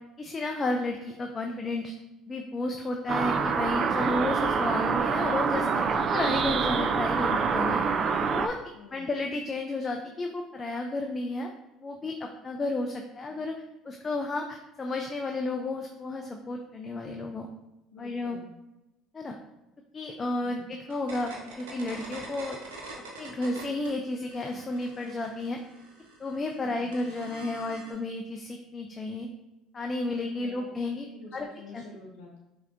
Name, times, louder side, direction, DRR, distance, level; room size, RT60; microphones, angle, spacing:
voice 1, 0.2-1.9 2.3-7.8 8.2-8.6 8.9-11.5 11.8-13.5 13.8-17.5 18.0-18.4 19.1-19.4 19.9-22.6 23.2-25.6 26.2-29.3 29.7-31.1 31.3-31.5 31.7-31.8, left 2 dB, 30° left, 3 dB, 0.4 m, -32 dB
sound 1, 3.1-8.5, right 5 dB, 45° right, 0.3 m, -26 dB
voice 2, 8.7-9.1 17.9-18.5 20.4-20.7 26.6-27.0 30.1-32.4, left 4 dB, 85° left, -3 dB, 0.6 m, -48 dB
sound 2, 20.9-23.9 24.2-27.9, right 2 dB, 85° right, 1.0 m, -45 dB
5.8 x 2.8 x 2.5 m, 0.96 s
hypercardioid pair, 75°, 0 cm